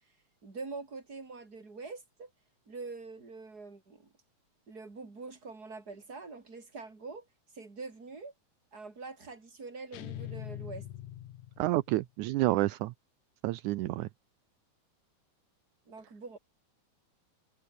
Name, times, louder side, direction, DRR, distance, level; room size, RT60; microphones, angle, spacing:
voice 1, 0.4-2.3 2.7-4.1 4.7-7.3 7.5-8.3 8.7-10.9 15.9-16.4, right 4 dB, 30° right, 4.7 m, -44 dB
sound 1, 9.9-12.0, left 12 dB, 80° left, 2.8 m, -43 dB
voice 2, 11.6-12.9 13.4-14.1, right 18 dB, 80° right, 2.1 m, -29 dB
omnidirectional pair, 3.5 m